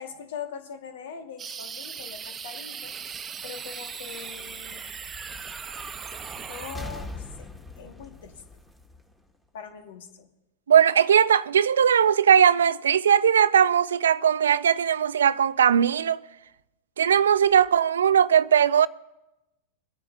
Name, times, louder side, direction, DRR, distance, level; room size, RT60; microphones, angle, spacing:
voice 1, 0.0-2.9 3.4-4.8 6.3-8.4 9.5-10.3, left 7 dB, 70° left, 1.5 m, -41 dB
sound 1, 1.4-6.8, right 7 dB, 25° right, 0.8 m, -38 dB
sound 2, 4.0-9.7, left 1 dB, 5° left, 1.7 m, -43 dB
voice 2, 10.7-16.2 17.0-18.9, right 8 dB, 80° right, 0.4 m, -19 dB
22.5 x 9.6 x 2.6 m
hypercardioid pair, 105°, 0 cm